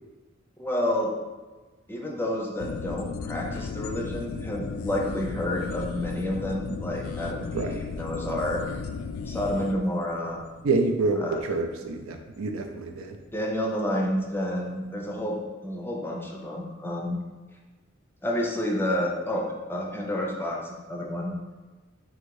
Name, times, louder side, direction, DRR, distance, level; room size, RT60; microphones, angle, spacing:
voice 1, 0.6-1.1 1.9-8.6 9.3-10.4 11.1-11.4 13.3-15.4 15.6-17.2 18.2-19.4 19.7-21.3, left 1 dB, 10° left, -1 dB, 0.5 m, -29 dB
sound 1, 2.6-13.5 13.8-13.9, left 5 dB, 85° left, 0.3 m, -36 dB
voice 2, 10.6-13.2, right 3 dB, 75° right, 4 dB, 0.5 m, -27 dB
3.7 x 2.6 x 4.6 m, 1.3 s
head